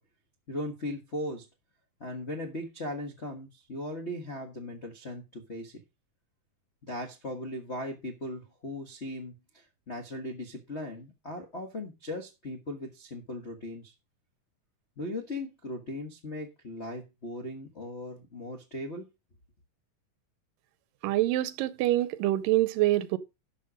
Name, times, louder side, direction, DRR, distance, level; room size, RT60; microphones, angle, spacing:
voice 1, 0.5-1.4 2.0-5.8 6.9-13.9 15.0-19.1, left 1 dB, 75° left, 0.6 m, -38 dB
voice 2, 21.0-23.2, right 15 dB, 85° right, 2.4 m, -25 dB
12.0 x 5.7 x 5.0 m
omnidirectional pair, 3.8 m